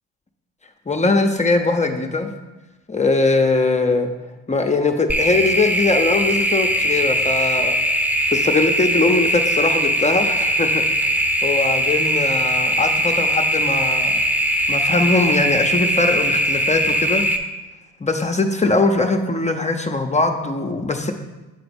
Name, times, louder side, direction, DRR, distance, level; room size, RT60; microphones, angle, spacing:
voice 1, 0.9-2.3 2.9-4.1 4.5-7.7 8.3-14.2 14.7-17.2 18.0-21.1, left 3 dB, 20° left, 5 dB, 0.7 m, -21 dB
sound 1, 5.1-17.4, equal, 5° right, 0.9 m, -20 dB
7.9 x 3.9 x 5.2 m, 1.1 s
supercardioid pair, 65°, 35 cm